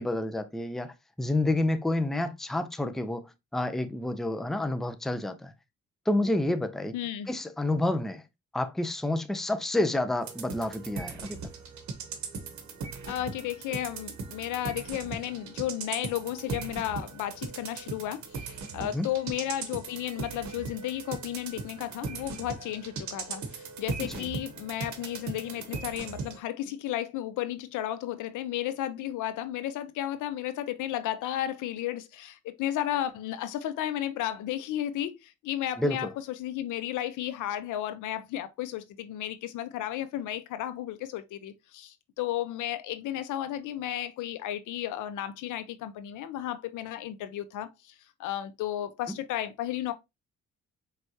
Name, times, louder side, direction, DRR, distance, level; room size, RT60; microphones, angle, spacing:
voice 1, 0.0-3.2 3.5-5.5 6.1-6.9 7.3-8.2 8.5-11.4 18.8-19.1 24.1-24.3 35.8-36.1, left 1 dB, ahead, 0.5 m, -29 dB
voice 2, 6.9-7.3 13.1-47.9 48.2-49.9, left 12 dB, 85° left, 0.6 m, -33 dB
sound 1, 10.2-26.4, right 5 dB, 65° right, 1.1 m, -39 dB
4.6 x 3.3 x 2.7 m
cardioid pair, 90°, 30 cm